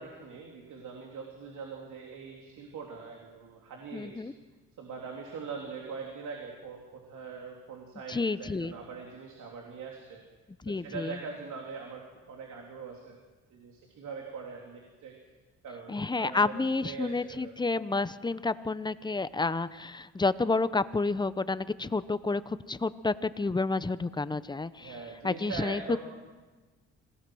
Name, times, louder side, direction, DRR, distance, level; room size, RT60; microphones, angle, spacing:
voice 1, 0.0-4.2 4.8-10.2 10.6-13.2 13.5-15.1 15.6-17.5 24.8-26.0, right 5 dB, 75° right, 0 dB, 3.4 m, -42 dB
voice 2, 3.9-4.3 8.1-8.7 10.6-11.2 15.9-24.9 25.2-26.0, left 3 dB, 15° left, 14 dB, 0.8 m, -30 dB
26.0 x 18.0 x 6.3 m, 1.3 s
cardioid pair, 90°, 30 cm